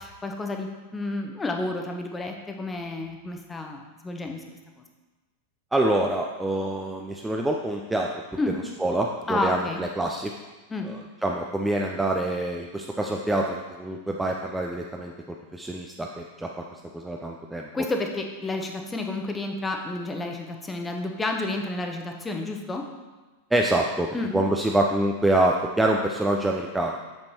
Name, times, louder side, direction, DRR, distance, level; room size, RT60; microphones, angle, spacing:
voice 1, 0.0-4.4 8.4-8.5 9.3-9.8 10.7-10.9 17.7-22.8 24.1-24.3, left 2 dB, 15° left, 3 dB, 0.9 m, -30 dB
voice 2, 5.7-8.1 8.8-10.3 10.8-15.1 15.5-17.7 23.5-27.0, right 1 dB, 5° right, 1 dB, 0.5 m, -26 dB
7.9 x 6.9 x 2.9 m, 1.2 s
figure-of-eight pair, 90°, 0 cm